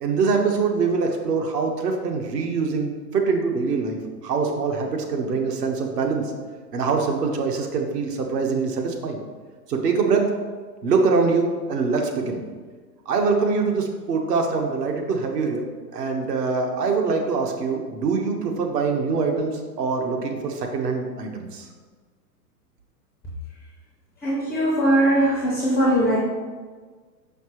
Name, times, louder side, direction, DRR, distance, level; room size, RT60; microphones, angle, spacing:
voice 1, 0.0-6.2 6.7-9.2 9.7-10.3 10.8-12.4 13.1-15.6 15.9-21.7, right 4 dB, 70° right, 2 dB, 1.2 m, -24 dB
voice 2, 24.2-26.2, right 1 dB, 5° left, -7 dB, 0.3 m, -20 dB
5.8 x 5.7 x 3.1 m, 1.5 s
hypercardioid pair, 120°, 49 cm